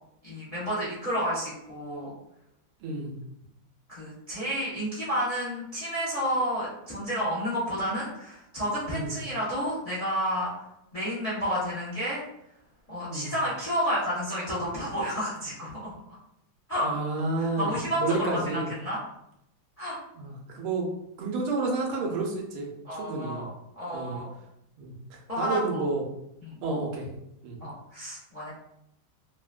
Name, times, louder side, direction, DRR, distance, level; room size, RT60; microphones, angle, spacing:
voice 1, 0.2-2.1 3.9-10.5 10.9-12.2 12.9-15.9 16.7-16.9 17.6-19.0 19.8-20.0 22.8-24.3 25.3-25.9 26.4-26.6 27.6-28.5, equal, 75° left, -9 dB, 0.3 m, -30 dB
voice 2, 2.8-3.2 8.9-9.2 13.1-13.3 16.8-18.7 20.2-20.9 21.2-23.5 23.9-24.2 24.8-26.0 26.6-27.1 27.4-27.6, right 3 dB, 85° right, 0 dB, 1.6 m, -30 dB
3.8 x 2.1 x 2.3 m, 0.80 s
omnidirectional pair, 2.3 m